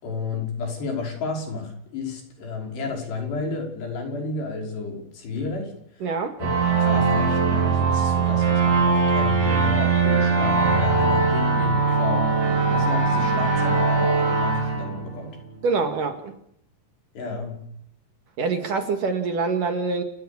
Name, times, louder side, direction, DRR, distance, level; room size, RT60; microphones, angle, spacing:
voice 1, 0.0-6.1 6.4-15.4 17.2-17.6, left 4 dB, 65° left, 2 dB, 7.8 m, -32 dB
voice 2, 6.0-6.4 15.6-16.3 18.4-20.0, right 4 dB, 55° right, 6 dB, 3.1 m, -25 dB
sound 1, 6.4-15.7, right 4 dB, 80° right, 7.8 m, -21 dB
29.5 x 18.5 x 7.1 m, 0.72 s
omnidirectional pair, 5.1 m